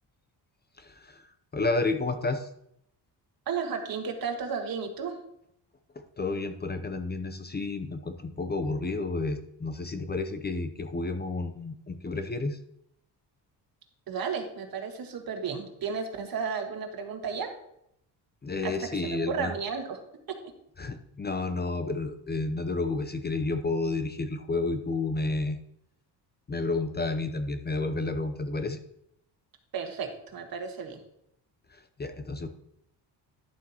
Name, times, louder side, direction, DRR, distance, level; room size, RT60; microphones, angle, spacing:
voice 1, 0.8-2.5 6.2-12.6 18.4-19.5 20.8-25.6 26.5-28.8 31.7-32.5, left 3 dB, 25° left, 8 dB, 0.7 m, -31 dB
voice 2, 3.5-5.2 14.1-17.5 18.6-20.0 29.7-31.0, right 6 dB, 55° right, 4 dB, 1.7 m, -33 dB
11.5 x 7.4 x 2.9 m, 0.75 s
cardioid pair, 105°, 41 cm